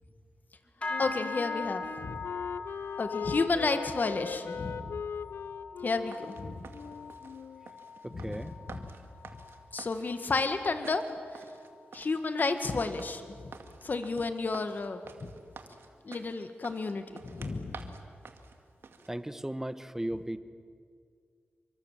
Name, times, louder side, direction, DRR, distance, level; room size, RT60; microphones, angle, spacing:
sound 1, 0.8-10.4 10.7-11.1 11.5-11.8 12.4-12.5, left 4 dB, 35° left, 4.2 m, -42 dB
Wind instrument woodwind instrument, 0.9-7.7, left 7 dB, 80° left, 0.7 m, -40 dB
voice 1, 1.0-2.2 3.0-5.0 5.8-6.7 8.1-8.9 9.7-11.0 11.3-11.4 11.9-13.3 13.8-15.3 16.0-17.9, left 3 dB, 50° left, 8 dB, 1.9 m, -32 dB
sound 2, 5.9-19.1, right 5 dB, 80° right, 2.2 m, -50 dB
voice 2, 8.0-8.5 19.1-20.4, right 1 dB, 10° right, 12 dB, 1.3 m, -36 dB
29.0 x 24.5 x 7.5 m, 2.1 s
cardioid pair, 75°, 4 cm